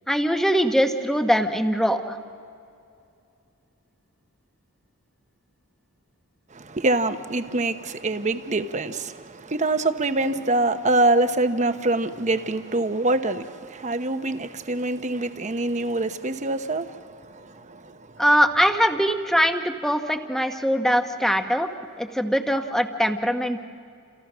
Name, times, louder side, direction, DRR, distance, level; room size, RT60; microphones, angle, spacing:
voice 1, 0.1-2.2 18.2-21.7 22.0-23.6, equal, ahead, 1.1 m, -22 dB
voice 2, 6.5-18.2, right 2 dB, 35° right, 1.0 m, -25 dB
29.0 x 27.5 x 6.2 m
head